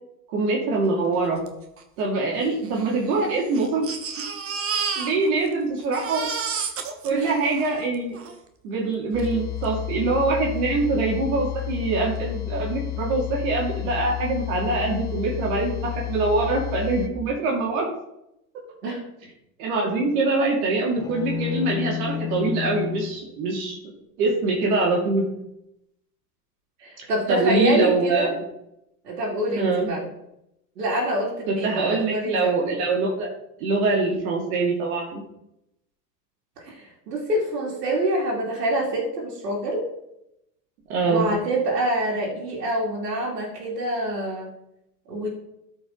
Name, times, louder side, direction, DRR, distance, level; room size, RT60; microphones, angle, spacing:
voice 1, 0.3-1.4 2.0-3.9 5.0-6.3 7.0-8.2 8.6-17.9 19.6-23.8 24.2-25.3 27.0-28.4 29.6-29.9 31.5-33.3 33.6-35.2 40.9-41.3, right 3 dB, 60° right, -1 dB, 2.6 m, -24 dB
Crying sobbing, 1.5-1.6 1.8-1.9 2.6-5.5 5.8-8.4 9.2-9.3 9.6-9.7, right 6 dB, 30° right, 1.4 m, -31 dB
voice 2, 7.1-7.4 18.8-19.0 26.8-28.3 29.0-30.1 30.8-32.6 36.6-39.8 41.1-44.5 45.1-45.3, right 1 dB, 80° right, -4 dB, 2.8 m, -26 dB
sound 1, 9.1-17.1, left 18 dB, 40° left, 1.5 m, -31 dB
sound 2, 21.0-23.2, left 10 dB, 10° left, 0.6 m, -30 dB
13.5 x 5.3 x 3.9 m, 0.84 s
hypercardioid pair, 100°, 47 cm